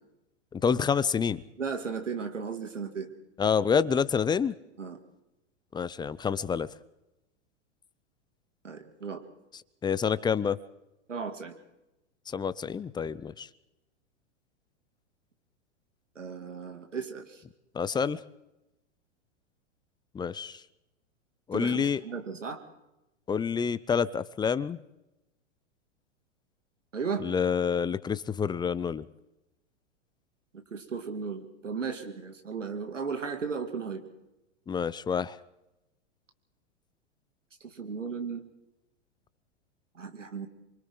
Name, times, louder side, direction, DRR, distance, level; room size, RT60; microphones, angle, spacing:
voice 1, 0.5-1.4 3.4-4.5 5.7-6.7 9.8-10.6 12.3-13.5 17.7-18.2 20.1-20.6 21.5-22.0 23.3-24.8 27.2-29.1 34.7-35.4, left 6 dB, 10° left, 17 dB, 0.6 m, -28 dB
voice 2, 1.6-3.1 4.8-5.0 8.6-9.2 11.1-11.5 16.2-17.4 21.5-22.6 26.9-27.2 30.7-34.0 37.6-38.4 39.9-40.5, right 5 dB, 90° right, 6 dB, 2.8 m, -35 dB
27.0 x 24.0 x 3.9 m, 0.94 s
hypercardioid pair, 105°, 36 cm